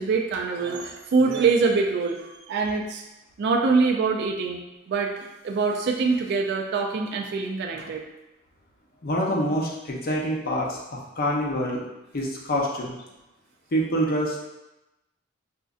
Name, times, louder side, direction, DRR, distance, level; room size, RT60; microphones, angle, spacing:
voice 1, 0.0-3.0 3.4-4.6 4.9-8.0, right 4 dB, 55° right, 0 dB, 0.3 m, -24 dB
voice 2, 9.0-11.8 12.1-13.0 13.7-14.4, equal, 45° left, -2 dB, 0.7 m, -26 dB
5.0 x 2.5 x 2.4 m, 0.98 s
head